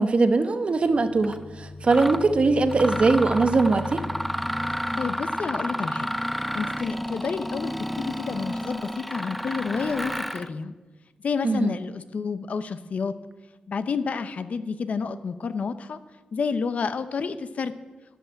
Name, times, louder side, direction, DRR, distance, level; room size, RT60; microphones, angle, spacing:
voice 1, 0.0-4.0 11.4-11.7, right 3 dB, 45° right, 10 dB, 1.0 m, -21 dB
sound 1, 0.7-5.4, left 2 dB, 40° left, 2.4 m, -38 dB
Mechanisms, 1.2-1.4 1.9-2.3 2.7-10.5, equal, ahead, 0.4 m, -31 dB
voice 2, 5.0-6.1 6.5-10.7 11.2-13.1 13.7-16.0 16.3-17.7, left 5 dB, 60° left, 12 dB, 0.7 m, -29 dB
12.5 x 5.6 x 9.0 m, 1.3 s
cardioid pair, 85°, 3 cm